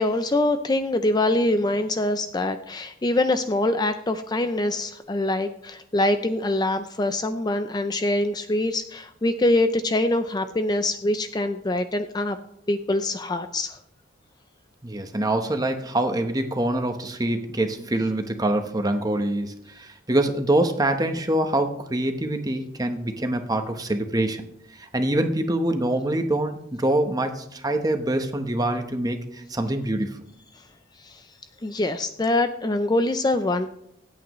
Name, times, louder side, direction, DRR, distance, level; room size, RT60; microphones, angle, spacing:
voice 1, 0.0-12.4 12.7-13.8 31.0-31.2 31.6-33.7, left 2 dB, 20° left, 9 dB, 0.4 m, -24 dB
voice 2, 14.8-24.4 24.8-30.2, right 1 dB, 20° right, 6 dB, 1.0 m, -25 dB
25.5 x 8.5 x 3.1 m, 0.80 s
head